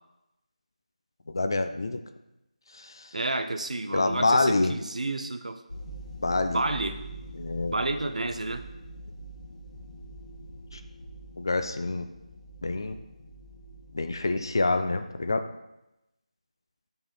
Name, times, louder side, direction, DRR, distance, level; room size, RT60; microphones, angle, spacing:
voice 1, 1.3-2.0 2.8-3.1 3.9-4.7 6.2-6.6 7.4-7.7 10.7-10.8 11.4-12.1 12.6-13.0 13.9-15.5, left 2 dB, 35° left, 8 dB, 0.4 m, -26 dB
voice 2, 3.1-5.6 6.5-7.0 7.7-8.7, right 2 dB, 65° right, 8 dB, 0.7 m, -30 dB
sound 1, 5.7-14.7 15.0-15.2, right 1 dB, 80° left, 1.9 m, -44 dB
7.4 x 5.5 x 4.3 m, 0.91 s
figure-of-eight pair, 175°, 4 cm